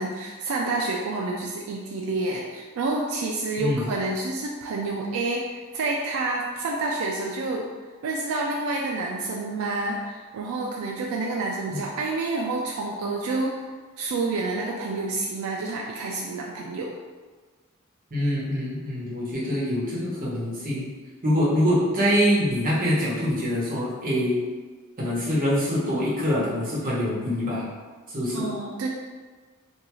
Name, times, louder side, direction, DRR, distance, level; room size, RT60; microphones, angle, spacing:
voice 1, 0.0-7.7 8.0-13.7 14.0-16.9 28.3-28.9, right 3 dB, 80° right, -2 dB, 0.3 m, -28 dB
voice 2, 18.1-20.9 21.2-24.4 25.0-27.7 28.1-28.5, equal, 40° right, -7 dB, 0.9 m, -24 dB
2.6 x 2.3 x 2.9 m, 1.4 s
head